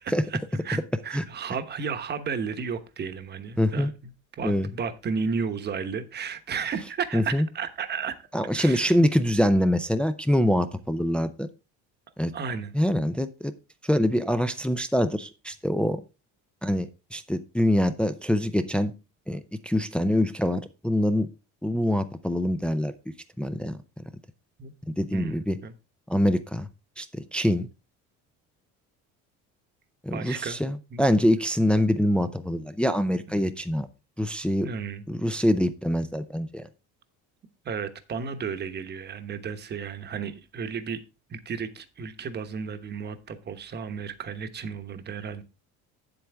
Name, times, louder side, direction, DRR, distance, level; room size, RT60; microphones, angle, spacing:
voice 1, 0.0-4.1 4.4-8.3 8.5-9.0 12.3-12.7 24.6-24.7 25.1-25.7 30.1-30.6 30.9-31.0 31.6-31.7 34.6-35.0 37.6-41.0 41.3-45.4, right 6 dB, 30° right, 1.1 m, -33 dB
voice 2, 3.6-3.9 4.4-4.7 7.1-7.5 8.3-11.5 12.2-12.3 12.7-13.5 13.8-16.0 16.6-18.9 19.3-21.3 21.6-22.9 23.4-23.8 25.0-25.6 26.1-26.7 27.0-27.7 30.0-33.9 34.2-34.7 35.1-36.6, left 1 dB, 5° left, 0.5 m, -24 dB
8.6 x 7.9 x 3.4 m
cardioid pair, 135°, 31 cm